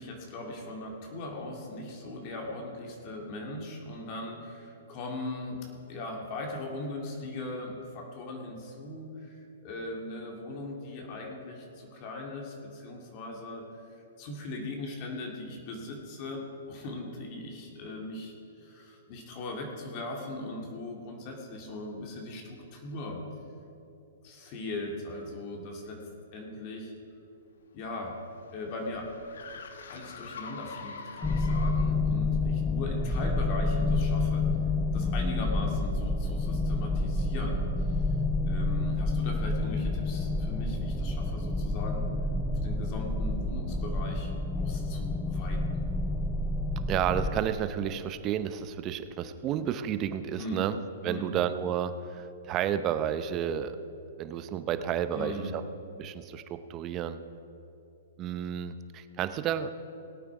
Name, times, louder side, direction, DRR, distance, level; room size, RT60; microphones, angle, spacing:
voice 1, 0.0-5.6 5.9-13.6 14.2-23.2 24.2-26.0 26.3-26.9 27.7-28.2 28.5-29.1 29.5-29.6 29.9-34.4 34.9-38.0 38.4-42.1 42.6-45.9 50.4-50.6 51.0-51.3 55.1-55.5, left 2 dB, 40° left, 0 dB, 2.1 m, -39 dB
sound 1, 27.6-32.1, left 5 dB, 75° left, 1.1 m, -44 dB
sound 2, 31.2-47.4, left 2 dB, 5° left, 0.5 m, -29 dB
voice 2, 46.9-50.8 51.0-53.8 54.2-55.6 56.0-57.2 58.2-59.7, right 9 dB, 30° right, 11 dB, 0.7 m, -31 dB
18.0 x 8.7 x 4.9 m, 2.8 s
hypercardioid pair, 135°, 0 cm